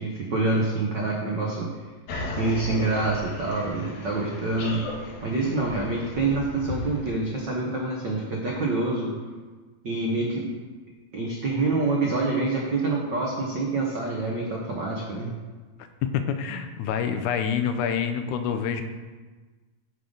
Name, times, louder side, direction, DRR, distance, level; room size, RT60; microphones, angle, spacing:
voice 1, 0.0-1.7 2.4-4.8 5.2-9.1 9.8-10.5 11.1-15.3, right 3 dB, 85° right, -2 dB, 0.9 m, -26 dB
sound 1, 2.1-7.1, left 2 dB, 65° left, 1.8 m, -36 dB
voice 2, 16.1-18.8, left 7 dB, 85° left, 8 dB, 2.1 m, -27 dB
11.5 x 3.8 x 5.2 m, 1.3 s
omnidirectional pair, 3.5 m